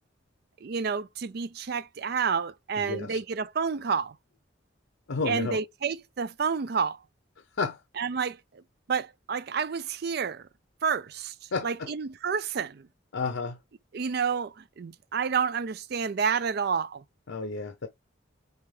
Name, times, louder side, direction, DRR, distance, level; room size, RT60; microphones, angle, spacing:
voice 1, 0.6-4.1 5.3-7.0 8.0-8.4 8.9-10.5 10.8-11.3 11.6-12.9 13.9-17.0, right 6 dB, 50° right, 0.4 m, -29 dB
voice 2, 2.8-3.2 5.1-5.6 7.6-7.8 11.5-11.9 13.1-13.6 17.3-17.9, left 4 dB, 85° left, 0.7 m, -31 dB
6.7 x 4.3 x 3.3 m
head